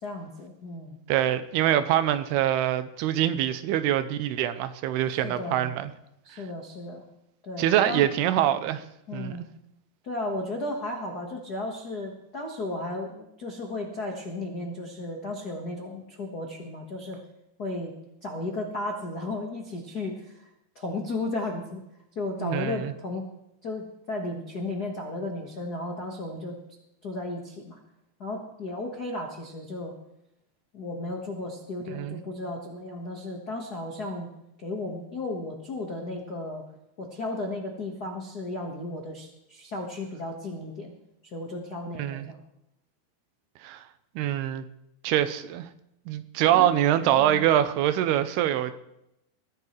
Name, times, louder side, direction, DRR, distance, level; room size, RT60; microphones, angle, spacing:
voice 1, 0.0-1.0 5.1-5.6 6.2-7.0 7.4-8.1 8.4-8.5 9.1-9.5 10.0-17.2 17.6-17.9 18.2-20.5 20.7-21.8 22.1-23.3 23.6-26.6 27.0-27.8 28.2-29.9 30.7-34.3 34.6-36.7 37.0-40.9 41.2-42.4 46.5-46.7 47.2-47.5, left 2 dB, 85° left, 0.8 m, -34 dB
voice 2, 1.1-5.9 7.6-8.8 9.1-9.4 22.4-22.9 31.9-32.2 42.0-42.3 43.6-43.8 44.2-44.6 45.0-45.7 46.1-48.7, right 11 dB, 85° right, 2.7 m, -24 dB
22.0 x 14.5 x 3.3 m
omnidirectional pair, 4.7 m